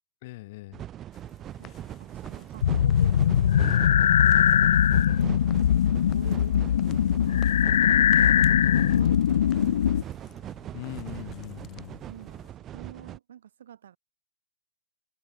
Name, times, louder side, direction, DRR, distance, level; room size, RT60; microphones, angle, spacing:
voice 1, 0.2-0.8 8.2-9.2 10.7-12.0, left 19 dB, 50° left, 4.0 m, -41 dB
sound 1, 0.7-13.2, right 11 dB, 25° right, 0.8 m, -40 dB
sound 2, 1.1-12.5, left 12 dB, 25° left, 3.9 m, -55 dB
voice 2, 1.6-5.4 6.0-7.4 8.8-10.2 12.0-14.0, right 9 dB, 75° right, 7.8 m, -48 dB
sound 3, 2.6-10.0, left 10 dB, 75° left, 0.3 m, -21 dB
hypercardioid pair, 135°, 0 cm